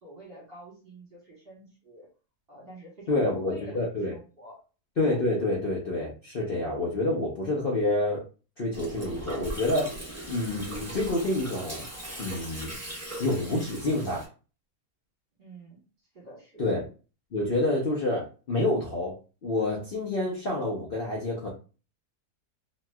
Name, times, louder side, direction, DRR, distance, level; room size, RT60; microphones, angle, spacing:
voice 1, 0.0-2.1 2.5-4.6 15.4-15.8 16.1-16.8, right 1 dB, 40° right, -3 dB, 1.2 m, -47 dB
voice 2, 3.1-4.1 5.0-8.2 8.6-10.0 10.3-11.9 12.2-12.7 13.2-14.3 16.6-16.8 17.3-19.2 19.4-21.5, left 2 dB, 50° left, -3 dB, 0.7 m, -28 dB
Gurgling, 8.7-14.3, right 1 dB, 15° right, 0.7 m, -39 dB
3.0 x 2.9 x 2.2 m, 0.34 s
omnidirectional pair, 1.7 m